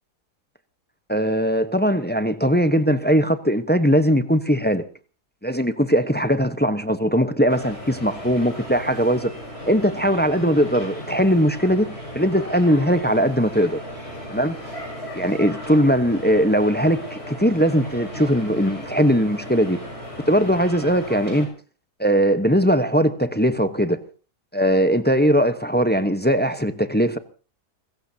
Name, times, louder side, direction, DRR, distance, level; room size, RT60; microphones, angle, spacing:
voice 1, 1.1-4.8 5.4-9.3 9.7-13.8 14.3-14.6 15.1-19.8 20.3-21.5 22.0-24.0 24.5-27.2, equal, 10° left, 0.7 m, -20 dB
sound 1, 7.5-21.5, equal, 40° left, 7.4 m, -36 dB
29.5 x 16.0 x 2.8 m
omnidirectional pair, 1.7 m